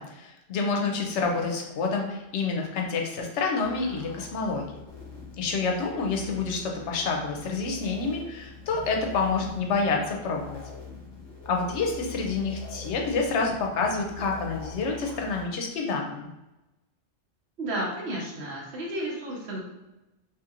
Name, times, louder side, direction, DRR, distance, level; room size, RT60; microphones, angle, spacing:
voice 1, 0.0-4.7 5.4-10.6 11.5-16.3, left 4 dB, 75° left, 1 dB, 0.8 m, -28 dB
sound 1, 1.0-15.4, left 4 dB, 45° left, 1.0 m, -44 dB
voice 2, 17.6-19.6, right 1 dB, 65° right, -3 dB, 1.0 m, -32 dB
2.8 x 2.7 x 2.4 m, 0.98 s
omnidirectional pair, 1.2 m